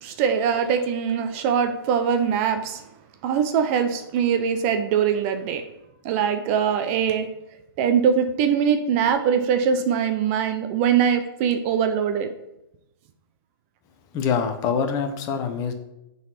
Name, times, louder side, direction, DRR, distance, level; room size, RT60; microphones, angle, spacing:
voice 1, 0.0-2.8 3.2-5.6 6.0-7.3 7.8-12.3, right 7 dB, 35° right, 8 dB, 0.6 m, -22 dB
voice 2, 14.1-15.7, left 6 dB, 25° left, 7 dB, 0.9 m, -25 dB
7.2 x 4.0 x 5.8 m, 0.88 s
hypercardioid pair, 140°, 13 cm